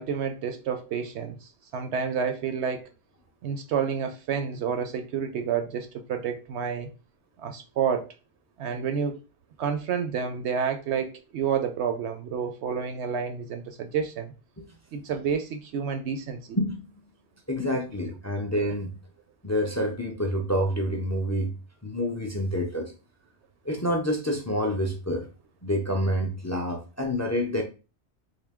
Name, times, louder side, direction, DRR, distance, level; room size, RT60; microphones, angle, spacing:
voice 1, 0.0-2.9 3.4-6.9 7.4-8.1 8.6-9.2 9.6-14.3 14.9-16.6, right 7 dB, 75° right, 0.8 m, -29 dB
voice 2, 16.6-16.9 17.5-18.9 19.4-21.5 21.8-22.9 23.7-25.3 25.6-27.6, equal, 25° left, 0.4 m, -27 dB
3.7 x 2.7 x 3.5 m
omnidirectional pair, 1.2 m